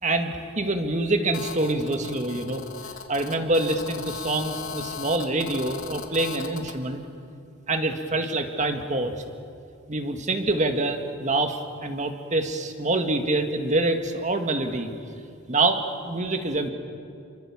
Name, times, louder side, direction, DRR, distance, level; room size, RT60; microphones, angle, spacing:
voice 1, 0.0-2.6 3.1-7.0 7.7-9.2 9.9-14.9 15.5-16.7, right 2 dB, 35° right, 6 dB, 1.9 m, -26 dB
Telephone, 1.3-6.8, left 6 dB, 70° left, 3.2 m, -37 dB
28.5 x 24.5 x 7.2 m, 2.4 s
head